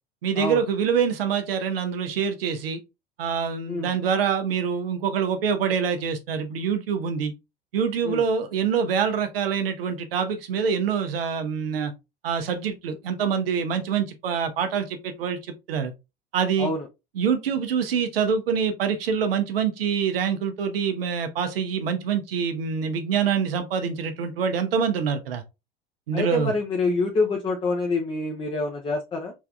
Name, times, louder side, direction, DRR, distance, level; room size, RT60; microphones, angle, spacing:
voice 1, 0.2-2.8 3.2-7.3 7.7-11.9 12.2-15.4 15.7-15.9 16.3-16.7 17.1-25.4 26.1-26.5, right 7 dB, 70° right, 0.7 m, -25 dB
voice 2, 26.1-29.3, left 3 dB, 15° left, 0.6 m, -26 dB
3.5 x 3.3 x 2.4 m
figure-of-eight pair, 80°, 30 cm